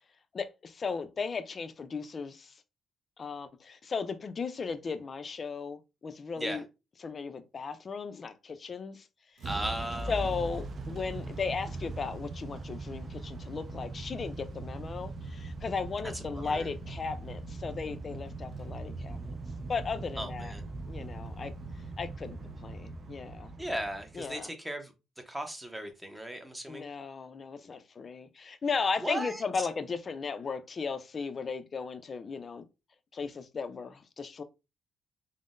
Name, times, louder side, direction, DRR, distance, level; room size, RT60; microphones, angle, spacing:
voice 1, 0.3-2.5 3.2-6.6 7.0-9.1 10.1-19.4 19.7-20.5 20.9-21.5 22.0-23.5 24.2-24.5 26.7-32.6 33.1-34.4, left 5 dB, 40° left, 0.4 m, -36 dB
voice 2, 9.4-10.4 16.1-16.7 20.2-20.6 23.6-24.9 25.2-26.8 29.0-29.7, right 1 dB, 10° right, 0.7 m, -37 dB
Motor vehicle (road) / Engine starting / Accelerating revving vroom, 9.4-24.4, right 2 dB, 50° right, 0.5 m, -40 dB
Acoustic guitar, 9.4-14.1, right 3 dB, 75° right, 0.9 m, -59 dB
3.6 x 2.0 x 2.5 m
cardioid pair, 90°, 0 cm